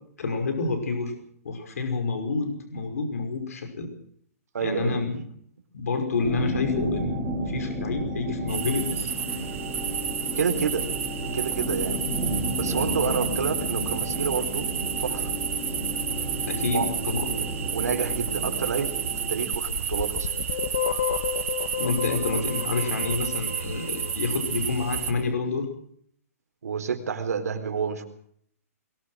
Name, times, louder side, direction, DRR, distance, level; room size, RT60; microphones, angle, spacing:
voice 1, 0.2-1.1 1.4-3.9 4.6-5.2 5.7-9.1 13.0-13.1 16.4-17.3 21.8-25.7, left 4 dB, 70° left, 5 dB, 5.6 m, -28 dB
voice 2, 4.5-5.0 10.4-10.9 11.3-12.0 12.6-14.7 15.0-15.3 16.7-16.9 17.3-20.3 26.6-28.1, right 6 dB, 85° right, 6 dB, 4.3 m, -29 dB
sound 1, 6.1-19.5, equal, ahead, 3.7 m, -32 dB
sound 2, 8.5-25.1, right 8 dB, 55° right, 4.6 m, -31 dB
sound 3, 19.5-24.4, left 9 dB, 45° left, 1.6 m, -31 dB
22.5 x 18.5 x 6.4 m, 0.64 s
hypercardioid pair, 175°, 8 cm